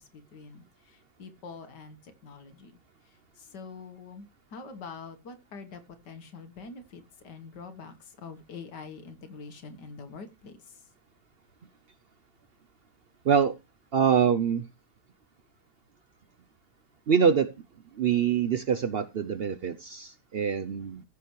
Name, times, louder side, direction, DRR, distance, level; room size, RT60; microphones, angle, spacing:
voice 1, 0.0-2.7 3.0-10.9, left 4 dB, 80° left, 9 dB, 2.0 m, -45 dB
voice 2, 13.2-13.5 13.9-14.6 17.1-17.5 17.9-21.0, right 7 dB, 70° right, 12 dB, 0.5 m, -25 dB
15.5 x 6.7 x 3.1 m, 0.25 s
omnidirectional pair, 1.8 m